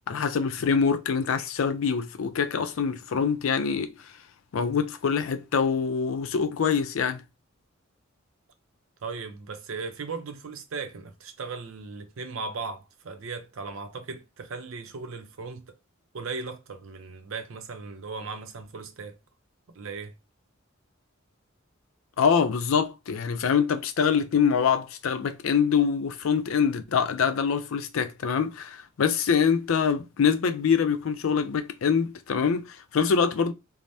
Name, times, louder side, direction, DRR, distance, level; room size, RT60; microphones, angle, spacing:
voice 1, 0.1-3.9 4.5-7.2 22.2-33.5, left 6 dB, 75° left, 0.4 m, -24 dB
voice 2, 9.0-15.8 16.1-19.2 19.7-20.2, right 4 dB, 75° right, 0.5 m, -37 dB
3.2 x 2.0 x 2.6 m
head